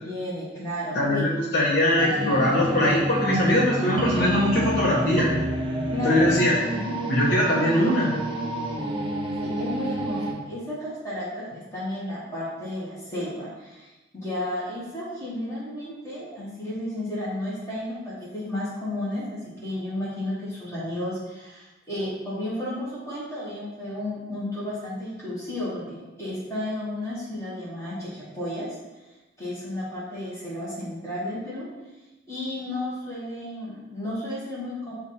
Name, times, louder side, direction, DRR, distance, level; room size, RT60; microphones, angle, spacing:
voice 1, 0.0-1.2 2.0-2.8 5.9-7.0 9.4-10.2 10.5-11.5 11.7-28.7 29.4-31.7 32.3-34.9, left 1 dB, 15° left, -8 dB, 1.4 m, -33 dB
voice 2, 0.9-5.3 6.0-6.5 7.1-8.1, left 1 dB, 50° left, -6 dB, 1.0 m, -21 dB
sound 1, 2.0-10.3, right 1 dB, 25° right, 0.5 m, -29 dB
4.7 x 2.6 x 4.2 m, 1.1 s
head